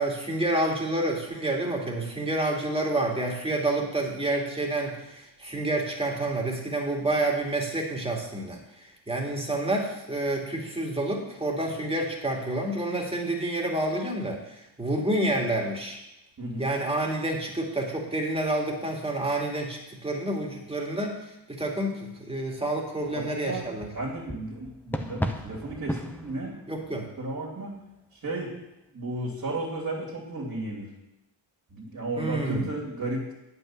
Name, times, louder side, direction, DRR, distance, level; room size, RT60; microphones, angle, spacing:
voice 1, 0.0-16.0 16.6-21.2 21.5-23.9 26.7-27.1 32.2-32.7, right 1 dB, 15° right, 0 dB, 2.5 m, -29 dB
voice 2, 16.4-16.7 23.0-23.7 23.9-26.6 27.2-27.7 28.2-28.5 28.9-30.9 31.7-33.3, right 2 dB, 50° right, -4 dB, 2.9 m, -33 dB
sound 1, 23.5-27.5, equal, 5° left, 1.0 m, -35 dB
8.6 x 5.5 x 7.4 m, 0.90 s
cardioid pair, 65°, 42 cm